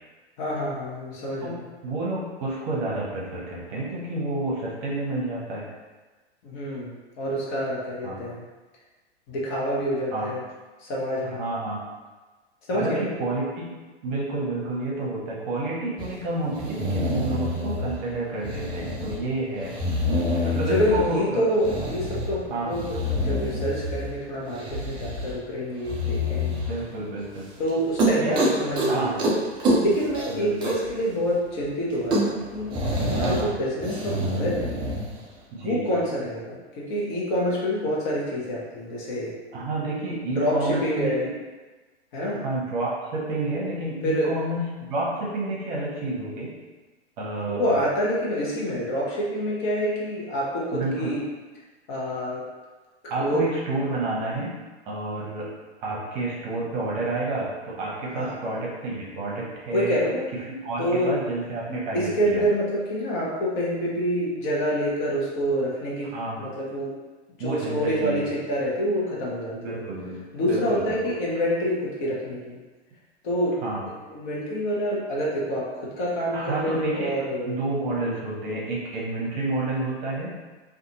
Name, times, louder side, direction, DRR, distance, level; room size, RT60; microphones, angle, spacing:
voice 1, 0.4-1.6 6.4-8.4 9.3-10.4 10.8-11.4 12.7-13.1 20.7-26.6 27.6-29.2 29.8-34.7 35.6-39.3 40.3-41.2 42.1-42.4 44.0-44.3 47.5-51.2 51.9-52.4 53.2-53.4 58.1-58.3 59.7-60.3 60.8-61.1 61.9-67.0 67.4-69.8 70.3-72.6 73.2-73.5 74.1-77.6, equal, 45° left, -5 dB, 0.9 m, -27 dB
voice 2, 1.4-5.7 8.0-8.2 10.1-10.3 11.2-11.8 12.7-13.7 14.0-19.7 20.4-21.4 22.5-22.7 26.5-27.5 28.2-28.4 28.9-29.2 30.3-30.7 33.2-33.5 35.5-36.0 39.5-41.3 42.4-46.5 47.2-47.8 50.7-51.1 53.1-54.6 54.9-55.5 55.8-60.0 60.5-62.5 66.1-66.5 67.4-68.3 69.5-71.0 73.6-73.8 76.3-77.1 77.4-80.3, right 2 dB, 40° right, -4 dB, 0.8 m, -30 dB
sound 1, 16.0-16.1 16.5-18.0 18.4-19.2 19.6-21.1 21.6-22.3 22.7-24.1 24.5-25.4 25.8-26.7 27.2-27.4 27.7-27.8 28.0-28.9 29.2-29.3 29.6-30.9 31.2-31.3 31.6-31.7 31.9-33.4 33.8-35.0, equal, 15° right, 0.3 m, -26 dB
2.5 x 2.4 x 2.7 m, 1.3 s
figure-of-eight pair, 105°, 34 cm